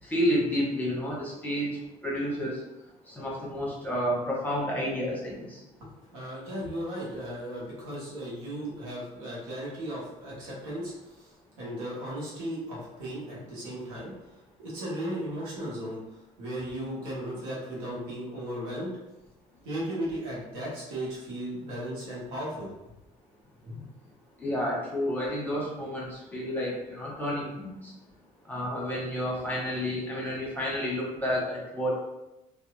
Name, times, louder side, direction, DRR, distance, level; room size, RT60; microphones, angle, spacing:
voice 1, 0.0-2.6 3.1-5.6 24.4-27.9 28.4-32.0, equal, 10° left, -4 dB, 1.0 m, -30 dB
voice 2, 5.8-14.1 14.6-18.9 19.6-22.7 23.6-23.8, equal, 85° right, -6 dB, 0.9 m, -36 dB
2.7 x 2.3 x 2.3 m, 0.95 s
hypercardioid pair, 60°, 19 cm